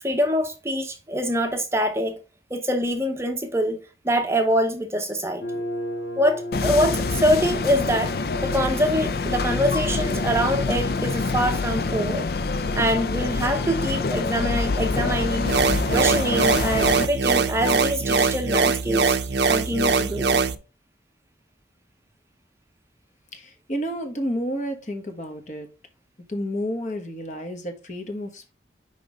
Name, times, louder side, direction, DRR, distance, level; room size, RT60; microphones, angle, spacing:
voice 1, 0.0-2.2 2.5-3.8 4.0-5.6 6.2-8.2 8.4-12.3 12.7-15.5 15.9-19.2 19.5-20.4, equal, 15° right, 0.7 m, -24 dB
sound 1, 5.4-19.9, equal, 80° left, 2.0 m, -38 dB
sound 2, 6.5-17.1, left 3 dB, 60° left, 0.5 m, -26 dB
sound 3, 15.4-20.5, right 4 dB, 75° right, 0.7 m, -22 dB
voice 2, 23.3-25.7 26.3-28.5, equal, 40° left, 1.3 m, -30 dB
6.2 x 5.1 x 3.4 m
head